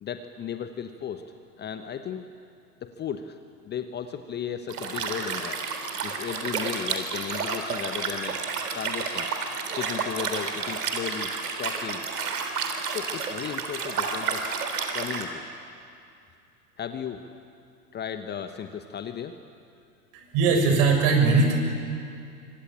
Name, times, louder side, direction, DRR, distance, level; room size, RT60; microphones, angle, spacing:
voice 1, 0.0-1.2 1.6-2.3 2.8-5.6 6.0-8.4 8.7-9.3 9.7-11.3 11.6-12.0 12.9-14.4 14.9-15.4 16.8-17.2 17.9-19.4, left 8 dB, 20° left, 8 dB, 1.2 m, -35 dB
Liquid, 4.7-15.2, right 5 dB, 70° right, 3.7 m, -31 dB
voice 2, 20.1-21.6, right 4 dB, 45° right, 3 dB, 6.9 m, -20 dB
27.0 x 24.5 x 8.9 m, 2.4 s
figure-of-eight pair, 95°, 48 cm